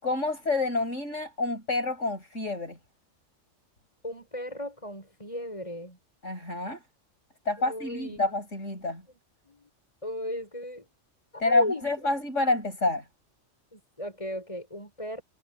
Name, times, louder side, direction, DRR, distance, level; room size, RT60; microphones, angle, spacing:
voice 1, 0.0-2.8 6.2-6.8 7.5-9.0 11.4-13.0, left 2 dB, 75° left, 7.5 m, -28 dB
voice 2, 4.0-6.0 7.6-8.2 9.1-9.2 9.4-9.7 10.0-10.9 11.3-12.1 13.7-15.2, left 1 dB, 25° left, 7.3 m, -36 dB
omnidirectional pair, 1.3 m